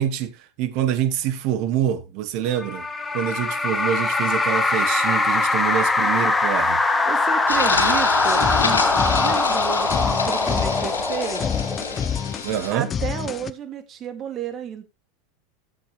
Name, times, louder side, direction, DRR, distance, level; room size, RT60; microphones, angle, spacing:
voice 1, 0.0-2.9 3.1-6.8 12.4-12.9, right 10 dB, 55° right, 1.6 m, -25 dB
sound 1, 2.6-12.3, left 3 dB, 15° left, 1.2 m, -22 dB
voice 2, 7.1-11.6 12.7-14.8, right 8 dB, 40° right, 2.3 m, -32 dB
sound 2, 7.5-12.7, left 4 dB, 90° left, 2.5 m, -28 dB
sound 3, 8.2-13.5, left 7 dB, 30° left, 0.8 m, -29 dB
13.0 x 7.8 x 3.3 m
hypercardioid pair, 90°, 0 cm